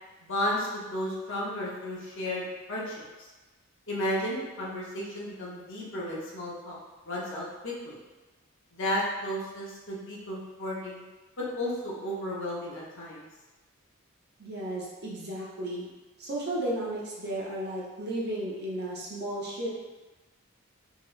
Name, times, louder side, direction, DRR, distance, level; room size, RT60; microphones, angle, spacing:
voice 1, 0.2-3.3 3.9-6.8 7.1-8.0 8.7-11.0 11.5-13.3, left 1 dB, 55° left, -5 dB, 0.8 m, -33 dB
voice 2, 14.4-15.8 16.2-19.7, right 1 dB, 45° right, -5 dB, 0.7 m, -34 dB
2.8 x 2.8 x 3.1 m, 1.2 s
head